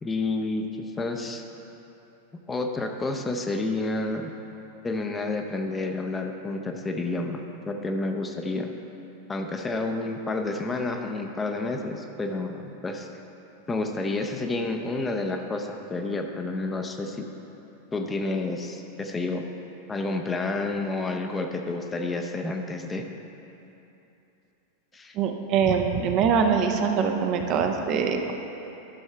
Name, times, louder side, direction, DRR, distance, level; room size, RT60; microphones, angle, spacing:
voice 1, 0.0-1.4 2.5-4.3 4.8-7.4 7.7-8.7 9.3-13.1 13.7-17.3 17.9-19.5 19.9-23.1 24.9-25.2, left 2 dB, 15° left, 4 dB, 0.6 m, -30 dB
voice 2, 25.1-28.3, right 6 dB, 40° right, 4 dB, 0.6 m, -23 dB
12.0 x 6.4 x 3.3 m, 3.0 s
figure-of-eight pair, 90°, 0 cm